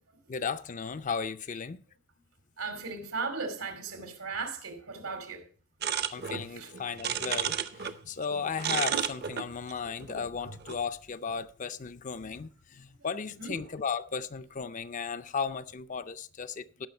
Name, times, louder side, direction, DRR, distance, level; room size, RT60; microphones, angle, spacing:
voice 1, 0.3-1.8 6.1-16.9, left 5 dB, 35° left, 0.4 m, -35 dB
voice 2, 2.6-5.4 6.6-6.7 13.4-13.6, right 4 dB, 85° right, 2.5 m, -36 dB
sound 1, 5.8-8.0 8.2-10.8, right 8 dB, 50° right, 0.6 m, -32 dB
17.5 x 5.8 x 4.3 m
head